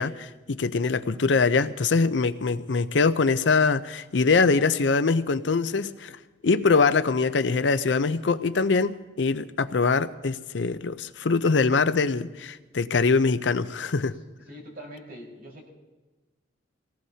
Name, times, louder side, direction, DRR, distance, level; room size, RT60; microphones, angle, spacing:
voice 1, 0.0-6.2 6.4-14.2, left 4 dB, 80° left, 12 dB, 0.6 m, -23 dB
voice 2, 14.5-15.7, equal, 60° right, -1 dB, 4.8 m, -43 dB
25.5 x 18.0 x 2.8 m, 1.2 s
head